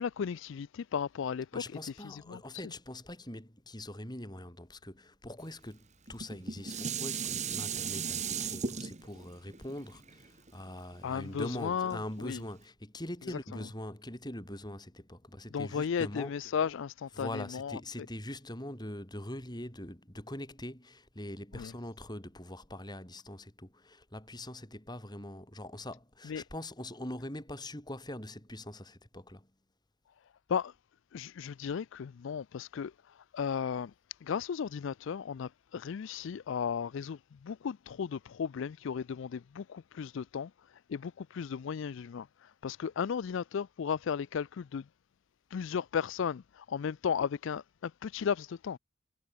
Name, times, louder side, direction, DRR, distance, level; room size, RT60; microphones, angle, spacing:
voice 1, 0.0-1.6 2.0-2.4 11.0-12.4 13.3-13.4 15.5-17.8 21.5-21.7 26.3-26.4 30.5-30.7 31.1-33.9 34.2-44.9 45.5-48.8, left 7 dB, 60° left, 0.4 m, -35 dB
voice 2, 1.5-16.4 17.1-29.5, left 1 dB, 20° left, 5.7 m, -43 dB
Dishes pots and pans, 6.1-11.4 11.9-12.0, right 6 dB, 35° right, 1.6 m, -37 dB
head